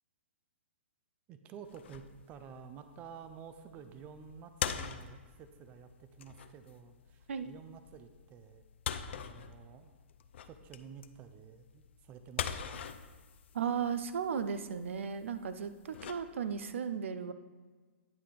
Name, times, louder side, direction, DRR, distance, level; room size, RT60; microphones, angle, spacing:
voice 1, 1.3-8.7 9.1-9.9 10.4-12.9, right 7 dB, 25° right, 10 dB, 0.4 m, -51 dB
sound 1, 1.6-16.7, left 8 dB, 65° left, 0.5 m, -44 dB
voice 2, 13.5-17.3, right 7 dB, 80° right, 11 dB, 0.5 m, -35 dB
9.6 x 3.4 x 5.7 m, 1.4 s
hypercardioid pair, 150°, 7 cm